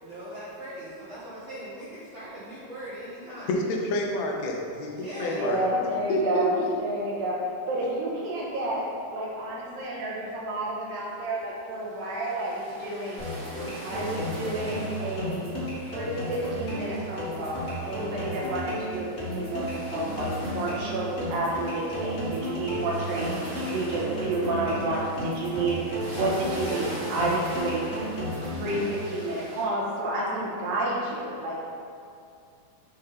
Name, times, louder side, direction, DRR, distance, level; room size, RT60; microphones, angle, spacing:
voice 1, 0.0-3.5 4.9-5.4, right 1 dB, 45° right, -10 dB, 0.9 m, -40 dB
voice 2, 3.5-5.8 6.1-6.7, left 1 dB, 85° left, 0 dB, 1.5 m, -28 dB
voice 3, 5.3-13.2 13.8-15.5 15.8-19.1 19.3-27.9 28.6-31.6, right 2 dB, 75° right, -4 dB, 2.7 m, -30 dB
sound 1, 11.4-11.5 11.9-29.6, right 1 dB, 60° right, 2.7 m, -43 dB
sound 2, 13.2-29.2, equal, 65° left, 0.8 m, -34 dB
8.2 x 3.8 x 4.3 m, 2.4 s
omnidirectional pair, 4.2 m